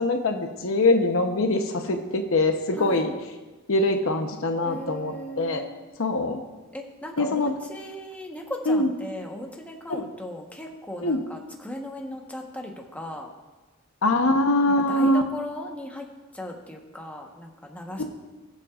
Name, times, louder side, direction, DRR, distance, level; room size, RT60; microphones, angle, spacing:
voice 1, 0.0-3.1 3.7-5.6 6.0-6.4 7.2-7.5 8.7-8.9 9.9-10.1 11.0-11.2 14.0-15.2 18.0-18.1, left 2 dB, 70° left, 5 dB, 0.9 m, -23 dB
voice 2, 2.7-3.1 4.6-5.8 6.7-13.3 14.7-16.1 16.3-18.0, left 1 dB, 5° left, 0 dB, 1.1 m, -37 dB
21.0 x 7.5 x 2.5 m, 1.2 s
head